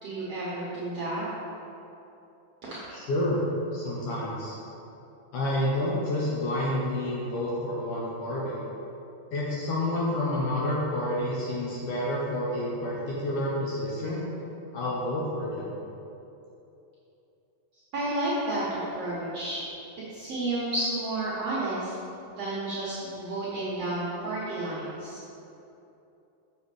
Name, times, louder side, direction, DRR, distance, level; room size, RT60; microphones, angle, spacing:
voice 1, 0.0-1.2 2.6-2.8 17.9-19.6 20.1-21.9 22.4-25.2, right 2 dB, 70° right, -8 dB, 1.5 m, -31 dB
voice 2, 2.9-3.4 3.7-4.6 5.3-8.6 9.3-14.2 14.7-15.7, left 1 dB, 70° left, -5 dB, 1.9 m, -29 dB
7.2 x 6.4 x 4.9 m, 2.8 s
omnidirectional pair, 4.8 m